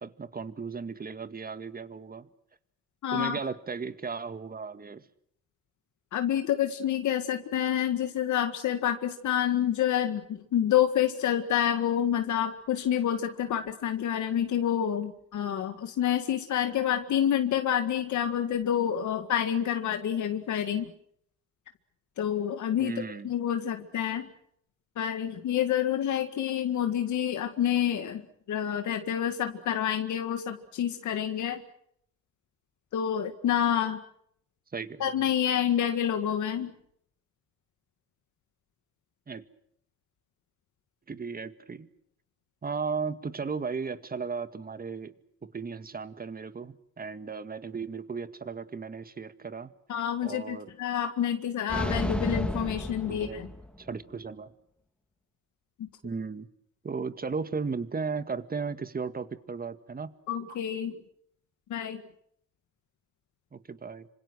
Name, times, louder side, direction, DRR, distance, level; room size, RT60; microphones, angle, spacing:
voice 1, 0.0-2.3 3.1-5.1 22.8-23.3 34.7-35.0 39.3-39.4 41.1-41.9 42.6-45.1 45.4-49.7 50.2-50.7 53.1-53.5 53.8-54.5 56.0-56.5 56.8-60.1 63.5-64.1, right 5 dB, 30° right, 11 dB, 1.9 m, -35 dB
voice 2, 3.0-3.4 6.1-20.9 22.2-22.9 23.2-24.3 25.0-28.2 28.5-31.6 32.9-34.0 35.0-36.7 49.9-53.5 55.8-55.9 60.3-61.0 61.7-62.0, left 10 dB, 70° left, 6 dB, 2.0 m, -28 dB
sound 1, 51.7-53.9, left 1 dB, 5° left, 2.8 m, -32 dB
26.5 x 26.5 x 6.4 m, 0.71 s
cardioid pair, 90°, 30 cm